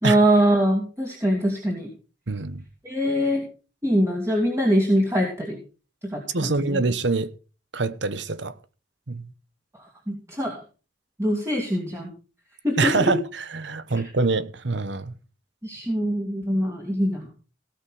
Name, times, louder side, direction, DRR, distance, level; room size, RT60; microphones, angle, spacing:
voice 1, 0.0-1.9 2.8-3.5 3.8-5.6 6.0-6.8 9.8-10.6 11.2-12.1 12.6-13.1 13.9-14.0 15.6-17.3, equal, 15° right, 2.5 m, -23 dB
voice 2, 2.3-2.6 6.3-7.3 7.7-8.5 9.1-9.3 12.8-13.2 13.5-15.1, right 3 dB, 70° right, 1.1 m, -25 dB
17.5 x 6.0 x 6.3 m
head